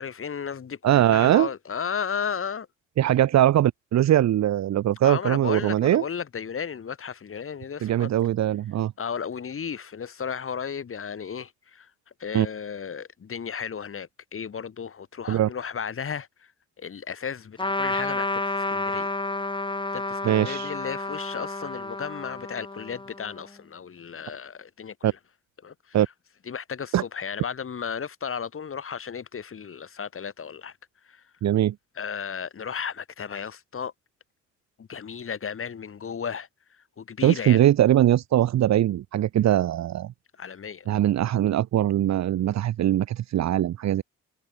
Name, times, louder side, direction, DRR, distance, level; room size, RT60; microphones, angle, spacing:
voice 1, 0.0-2.7 5.0-8.1 9.0-11.9 12.2-16.5 16.8-19.1 19.9-25.2 25.6-26.0 26.4-30.8 31.0-31.2 31.9-33.9 34.8-36.5 36.8-37.6 40.4-41.0, left 7 dB, 45° left, 4.7 m, -34 dB
voice 2, 0.8-1.5 3.0-6.0 7.8-8.9 12.3-12.5 15.3-15.5 20.2-20.7 25.0-25.1 25.9-26.1 26.9-27.0 31.4-31.7 37.2-40.1 40.9-44.0, right 12 dB, 65° right, 1.0 m, -21 dB
Trumpet, 17.6-23.5, left 2 dB, 15° left, 3.9 m, -30 dB
cardioid pair, 90°, 30 cm